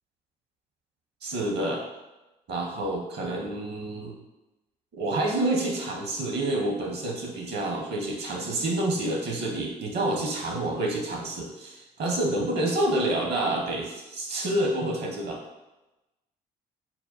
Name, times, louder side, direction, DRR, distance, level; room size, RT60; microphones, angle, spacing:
voice 1, 1.2-1.8 2.5-4.2 4.9-15.4, right 1 dB, 55° right, 0 dB, 1.1 m, -28 dB
4.0 x 2.3 x 4.1 m, 1.0 s
figure-of-eight pair, 45°, 21 cm